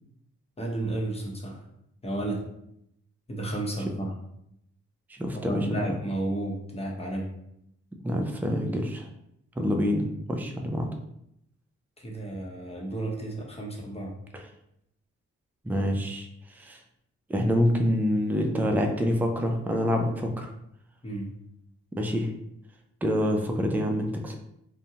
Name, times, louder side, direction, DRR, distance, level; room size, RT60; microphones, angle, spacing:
voice 1, 0.6-1.6 2.0-2.4 3.3-4.2 5.3-7.3 12.0-14.1 21.0-21.3, right 2 dB, 20° left, -1 dB, 0.8 m, -32 dB
voice 2, 5.2-5.9 8.0-9.1 9.6-10.9 15.6-16.3 16.6-16.8 17.3-20.5 22.0-22.3 23.0-24.4, equal, 5° right, 3 dB, 0.4 m, -26 dB
2.6 x 2.1 x 2.8 m, 0.76 s
cardioid pair, 60°, 29 cm